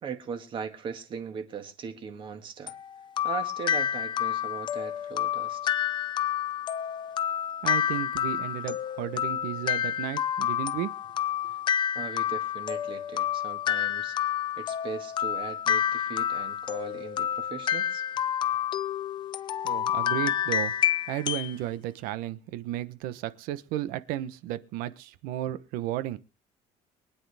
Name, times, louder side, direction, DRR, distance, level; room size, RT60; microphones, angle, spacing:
voice 1, 0.0-2.7 3.2-5.7 11.5-11.6 12.0-18.0, right 6 dB, 35° right, 1.9 m, -39 dB
sound 1, 2.7-21.5, left 10 dB, 30° left, 0.6 m, -29 dB
voice 2, 7.6-11.0 19.6-20.7 21.1-26.2, right 13 dB, 80° right, 1.1 m, -33 dB
23.5 x 9.9 x 3.5 m
cardioid pair, 175°, 15 cm